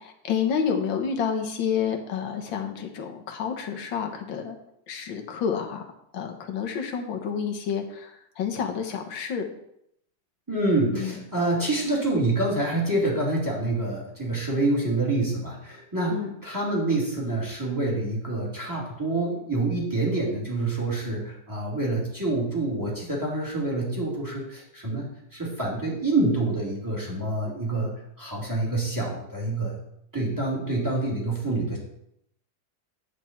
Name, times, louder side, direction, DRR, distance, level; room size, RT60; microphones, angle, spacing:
voice 1, 0.0-4.6 4.9-5.9 6.1-9.4 10.9-11.2 16.1-16.4, left 7 dB, 85° left, 3 dB, 1.9 m, -29 dB
voice 2, 10.5-27.9 28.2-29.8 30.1-31.8, right 2 dB, 10° right, -4 dB, 2.9 m, -27 dB
9.7 x 8.3 x 4.4 m, 0.77 s
omnidirectional pair, 2.0 m